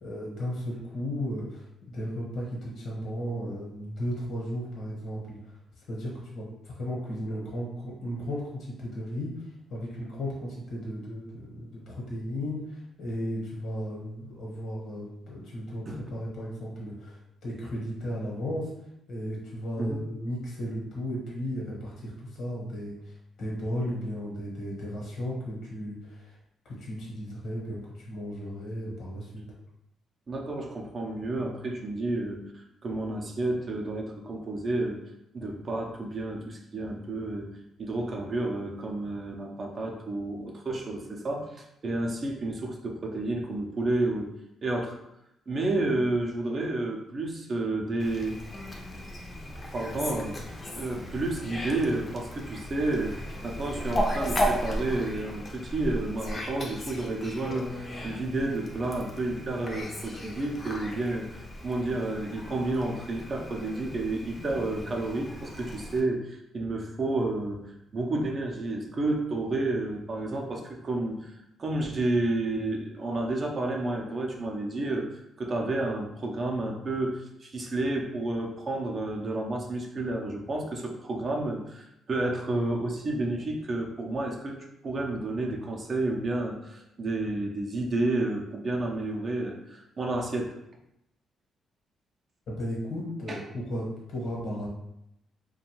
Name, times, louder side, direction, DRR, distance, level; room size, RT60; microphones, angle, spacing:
voice 1, 0.0-5.4 5.9-9.4 9.7-18.7 19.1-26.3 26.6-29.4 92.5-94.7, equal, 70° left, -4 dB, 1.0 m, -35 dB
voice 2, 30.3-35.0 35.3-37.5 37.8-44.3 44.6-45.0 45.5-48.4 49.7-50.4 50.8-67.6 67.9-71.3 71.6-84.6 84.8-90.6 93.3-93.4, right 2 dB, 40° right, 1 dB, 0.5 m, -30 dB
Fowl, 48.0-66.0, equal, 30° left, 0.5 m, -36 dB
2.6 x 2.2 x 3.0 m, 0.81 s
cardioid pair, 85°, 0 cm